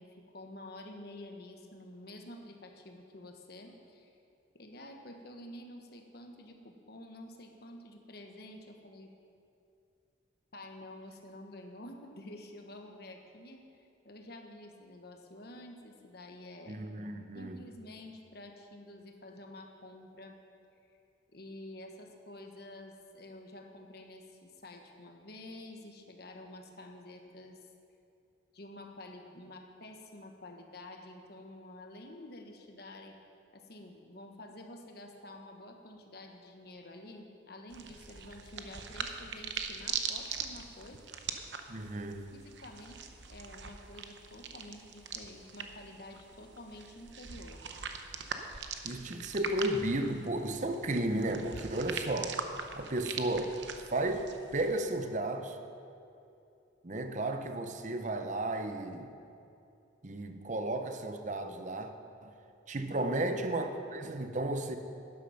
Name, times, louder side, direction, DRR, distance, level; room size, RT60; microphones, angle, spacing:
voice 1, 0.0-4.2 4.5-9.1 10.5-16.8 17.3-20.4 21.3-27.6 28.5-33.2 33.5-41.0 42.3-47.6 62.7-63.1, left 1 dB, 55° left, 3 dB, 1.3 m, -49 dB
voice 2, 16.7-17.6 41.7-42.3 48.8-52.4 52.8-53.5 53.9-55.6 56.8-59.1 60.0-61.9 62.2-62.3 62.7-64.8, right 1 dB, 40° right, 7 dB, 0.8 m, -33 dB
sound 1, 37.7-54.8, right 6 dB, 70° right, 0.8 m, -42 dB
12.0 x 10.0 x 5.8 m, 2.6 s
head